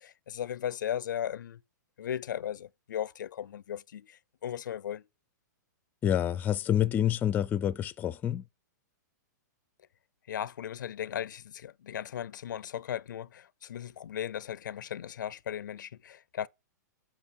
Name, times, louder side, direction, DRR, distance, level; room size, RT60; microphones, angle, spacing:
voice 1, 0.0-1.6 2.0-5.0 10.3-16.5, left 10 dB, 80° left, 0.5 m, -37 dB
voice 2, 6.0-8.4, left 10 dB, 15° left, 0.5 m, -27 dB
8.8 x 5.8 x 6.3 m
hypercardioid pair, 145°, 10 cm